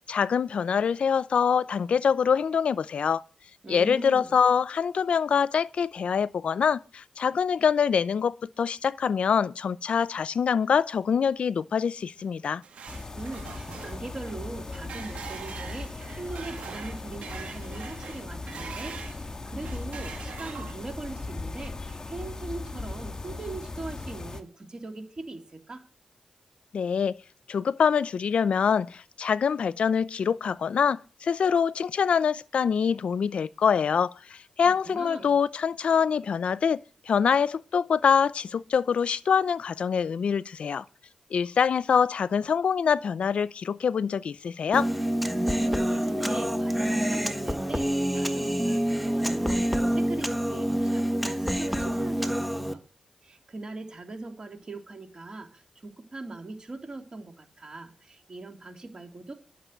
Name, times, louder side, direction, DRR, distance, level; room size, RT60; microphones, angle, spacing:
voice 1, 0.1-3.2 3.7-12.6 26.7-27.1 27.5-36.8 37.1-40.8 41.3-44.9, left 7 dB, 70° left, 0.5 m, -25 dB
voice 2, 3.6-4.3 13.1-25.9 34.6-35.4 45.5-52.8 53.2-59.3, right 2 dB, 40° right, 3.1 m, -41 dB
sound 1, 12.2-19.2 19.6-21.0, right 6 dB, 85° right, 2.0 m, -43 dB
sound 2, 12.9-24.4, left 3 dB, 30° left, 1.5 m, -38 dB
Human voice, 44.7-52.7, equal, ahead, 1.4 m, -27 dB
11.5 x 6.6 x 9.2 m
cardioid pair, 80°, 2 cm